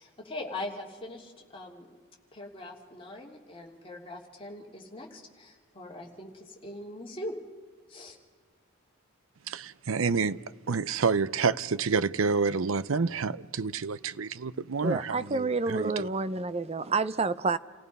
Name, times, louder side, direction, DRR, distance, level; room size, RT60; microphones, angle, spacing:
voice 1, 0.0-1.9 2.3-7.3 7.9-8.2, left 1 dB, 25° left, 2.7 m, -41 dB
voice 2, 9.5-10.4 10.7-16.1, right 5 dB, 75° right, 0.6 m, -28 dB
voice 3, 14.8-17.6, right 3 dB, 30° right, 0.5 m, -29 dB
29.0 x 17.0 x 5.4 m
head